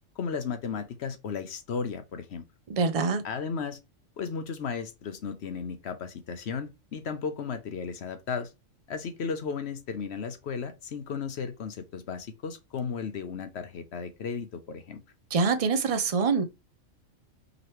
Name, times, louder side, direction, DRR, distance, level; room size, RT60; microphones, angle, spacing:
voice 1, 0.2-2.4 3.2-3.8 4.2-8.5 8.9-15.0, left 6 dB, 60° left, 0.9 m, -35 dB
voice 2, 2.7-3.2 15.3-16.4, right 4 dB, 55° right, 0.4 m, -25 dB
5.0 x 3.0 x 3.0 m
omnidirectional pair, 1.3 m